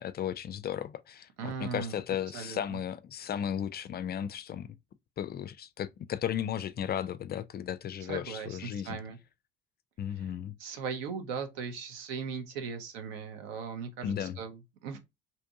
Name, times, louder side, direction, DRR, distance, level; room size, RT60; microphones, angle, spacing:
voice 1, 0.0-4.7 5.2-9.0 10.0-10.5 14.0-14.4, left 9 dB, 30° left, 0.4 m, -35 dB
voice 2, 1.4-2.0 2.3-2.8 8.1-9.2 10.1-10.3 10.6-15.0, right 6 dB, 70° right, 0.9 m, -38 dB
3.4 x 2.9 x 2.6 m
figure-of-eight pair, 55°, 31 cm